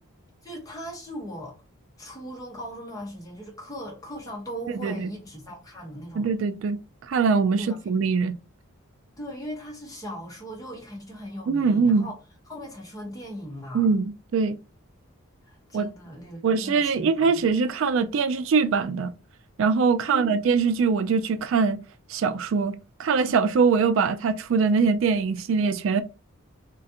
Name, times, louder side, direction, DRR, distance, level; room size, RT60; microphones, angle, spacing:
voice 1, 0.4-1.6 2.0-6.3 7.6-7.8 9.2-12.2 12.5-13.9 15.4-17.8 20.1-20.4, equal, 15° left, 1.2 m, -38 dB
voice 2, 6.2-8.3 11.5-12.1 13.7-14.6 15.7-15.9 16.4-19.1 19.6-21.8 22.1-22.7 23.0-26.0, right 5 dB, 60° right, 0.3 m, -22 dB
3.7 x 3.1 x 2.8 m
head